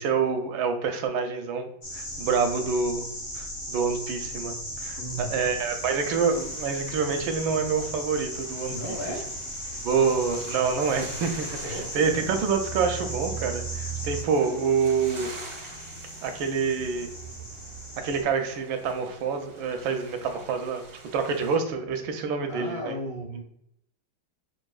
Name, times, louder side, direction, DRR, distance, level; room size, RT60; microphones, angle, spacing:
voice 1, 0.0-3.0 3.4-9.0 9.8-15.3 16.2-17.1 18.0-20.8 21.1-22.9, right 5 dB, 85° right, 6 dB, 1.4 m, -27 dB
sound 1, 1.8-18.2, right 1 dB, 35° left, 0.9 m, -36 dB
voice 2, 4.9-5.5 8.7-9.3 11.5-12.3 22.5-23.4, equal, 80° left, -4 dB, 2.5 m, -36 dB
sound 2, 5.6-21.6, right 2 dB, 50° right, 0.3 m, -47 dB
6.2 x 2.6 x 2.3 m, 0.72 s
omnidirectional pair, 2.1 m